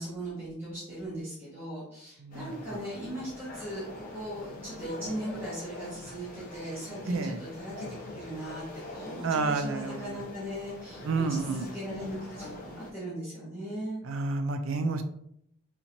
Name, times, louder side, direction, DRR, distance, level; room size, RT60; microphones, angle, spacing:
voice 1, 0.0-7.9 8.1-8.6 8.9-14.0, equal, 10° right, -9 dB, 1.0 m, -38 dB
voice 2, 2.2-2.5 7.1-7.4 9.2-10.2 11.0-11.7 14.0-15.0, right 3 dB, 70° right, 8 dB, 0.4 m, -30 dB
sound 1, 2.3-12.9, left 1 dB, 40° left, 0.7 m, -43 dB
4.2 x 2.9 x 2.6 m, 0.72 s
head